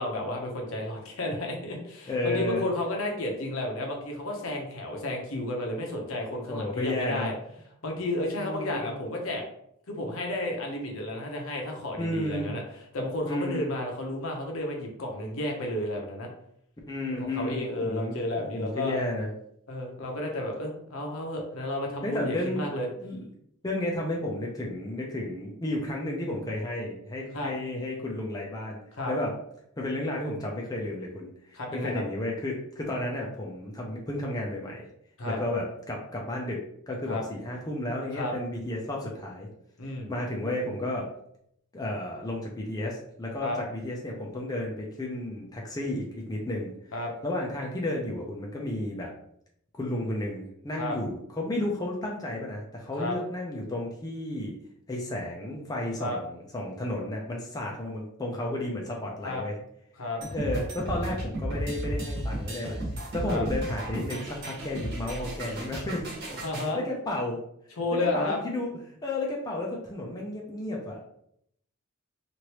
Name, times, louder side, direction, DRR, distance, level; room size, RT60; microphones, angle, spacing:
voice 1, 0.0-7.3 7.8-9.4 9.9-12.6 12.9-16.3 17.1-19.0 19.7-22.9 27.3-27.5 29.0-29.1 31.5-32.0 35.2-35.4 37.1-37.2 38.1-38.3 39.8-40.1 43.4-43.6 46.9-47.1 50.8-51.0 53.0-53.2 56.0-56.2 59.2-59.4 60.0-60.2 63.3-63.4 66.4-66.8 67.8-68.4, left 1 dB, 70° left, 1 dB, 0.8 m, -32 dB
voice 2, 2.1-2.7 6.5-7.3 8.4-8.9 12.0-12.5 13.3-13.7 16.9-19.3 22.0-22.7 23.0-23.3 23.6-28.8 29.1-29.3 29.8-34.9 35.3-39.5 40.1-41.1 41.7-46.7 47.2-49.1 49.8-54.6 54.9-59.6 60.3-62.8 63.1-66.1 66.7-67.4 68.1-68.7 69.0-71.0, left 1 dB, 20° left, -2 dB, 0.5 m, -32 dB
sound 1, 60.2-66.7, right 1 dB, 50° right, 1.2 m, -34 dB
3.1 x 2.5 x 2.9 m, 0.72 s
head